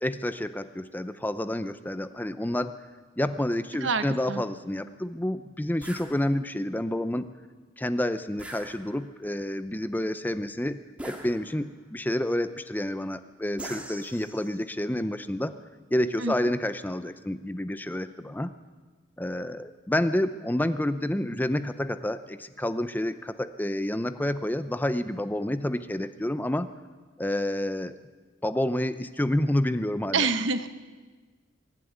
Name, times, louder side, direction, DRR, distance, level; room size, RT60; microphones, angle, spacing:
voice 1, 0.0-2.7 3.2-7.3 7.8-10.8 11.0-15.5 15.9-18.5 19.2-26.7 27.2-28.0 28.4-30.3, left 1 dB, 10° left, 12 dB, 0.6 m, -29 dB
voice 2, 3.8-4.4 16.2-16.3 30.1-30.7, right 4 dB, 65° right, 11 dB, 1.1 m, -26 dB
sound 1, 5.8-6.1 8.4-9.2 11.0-11.8 13.6-14.7, right 1 dB, 5° right, 2.2 m, -42 dB
23.5 x 11.5 x 9.7 m, 1.4 s
head